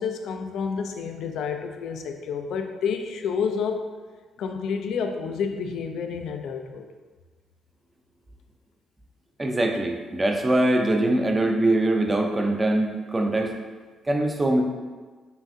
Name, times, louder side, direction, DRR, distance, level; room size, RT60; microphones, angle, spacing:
voice 1, 0.0-3.9 4.4-6.8, left 6 dB, 75° left, 5 dB, 0.4 m, -29 dB
voice 2, 9.4-13.5 14.1-14.6, right 1 dB, 20° right, 2 dB, 0.5 m, -22 dB
5.6 x 2.4 x 2.6 m, 1.4 s
cardioid pair, 90°, 0 cm